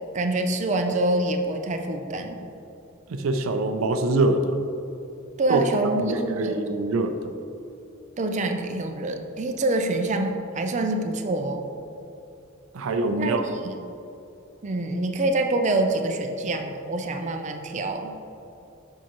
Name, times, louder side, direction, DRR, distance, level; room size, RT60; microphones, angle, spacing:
voice 1, 0.1-2.4 5.4-6.6 8.2-11.7 13.2-13.4 13.6-13.7 14.6-18.1, right 2 dB, 35° right, 4 dB, 0.5 m, -26 dB
voice 2, 3.1-4.6 5.5-5.7 6.0-7.2 12.7-13.6, right 2 dB, 90° right, 7 dB, 0.4 m, -24 dB
7.3 x 5.5 x 3.0 m, 2.8 s
head